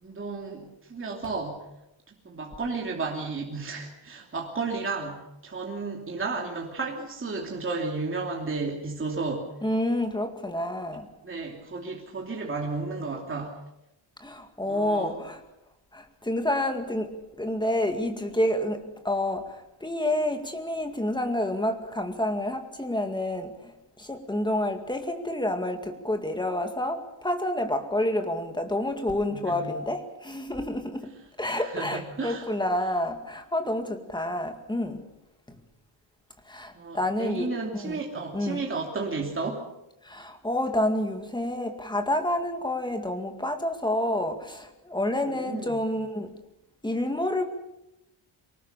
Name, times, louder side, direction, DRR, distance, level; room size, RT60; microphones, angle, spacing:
voice 1, 0.0-1.6 2.2-9.5 11.2-13.6 14.7-15.2 29.3-29.7 31.5-32.4 36.7-39.6 45.3-45.8, right 3 dB, 25° right, -1 dB, 2.9 m, -33 dB
voice 2, 9.6-11.1 14.2-15.4 15.9-23.7 24.0-31.1 31.4-35.1 36.5-38.0 38.3-38.6 40.0-46.4 46.8-47.5, left 1 dB, 10° left, 6 dB, 2.1 m, -29 dB
24.0 x 19.5 x 6.8 m, 0.91 s
wide cardioid pair, 160°, 50 cm